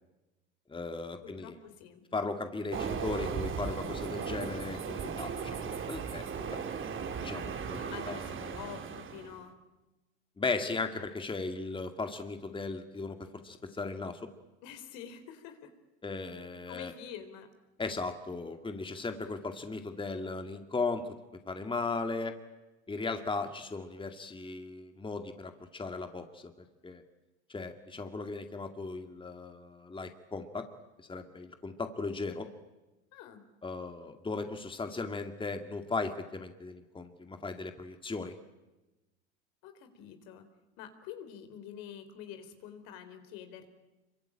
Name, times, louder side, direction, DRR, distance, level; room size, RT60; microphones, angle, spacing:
voice 1, 0.7-1.6 2.1-6.6 7.2-7.8 8.1-8.2 10.4-14.2 16.0-16.9 17.8-21.1 21.5-22.3 22.9-26.5 26.8-27.0 27.5-30.7 31.1-32.5 33.6-38.3, left 3 dB, 15° left, 6 dB, 2.3 m, -37 dB
voice 2, 1.2-2.0 7.8-9.5 14.6-15.7 16.7-17.5 33.1-33.4 39.6-40.4 40.8-43.7, left 9 dB, 65° left, 8 dB, 4.2 m, -47 dB
Train, 2.7-9.4, right 6 dB, 35° right, 3.1 m, -37 dB
26.5 x 24.0 x 8.9 m, 1.1 s
hypercardioid pair, 90°, 35 cm